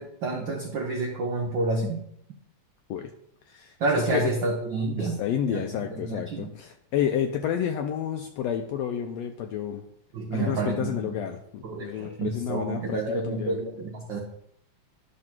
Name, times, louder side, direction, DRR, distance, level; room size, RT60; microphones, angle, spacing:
voice 1, 0.0-2.0 3.8-5.2 5.5-6.5 10.1-11.2 11.6-14.2, right 3 dB, 85° right, 1 dB, 1.0 m, -29 dB
voice 2, 3.5-3.8 4.1-4.3 5.0-9.8 10.3-13.6, left 9 dB, 80° left, 5 dB, 1.6 m, -30 dB
11.0 x 3.9 x 5.9 m, 0.71 s
omnidirectional pair, 3.4 m